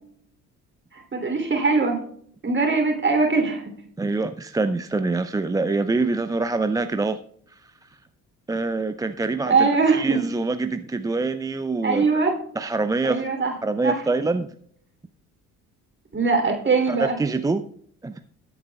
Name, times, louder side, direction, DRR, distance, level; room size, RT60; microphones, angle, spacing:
voice 1, 1.1-2.0 2.4-3.6 9.5-10.2 11.8-12.3 13.0-13.5 13.8-14.0 16.1-17.2, right 4 dB, 25° right, 3 dB, 3.2 m, -21 dB
voice 2, 4.0-7.2 7.5-7.7 8.5-12.2 12.6-13.3 13.6-14.5 16.9-17.6 18.0-18.2, right 3 dB, 10° right, 9 dB, 0.4 m, -25 dB
20.5 x 8.0 x 2.3 m, 0.63 s
figure-of-eight pair, 50°, 44 cm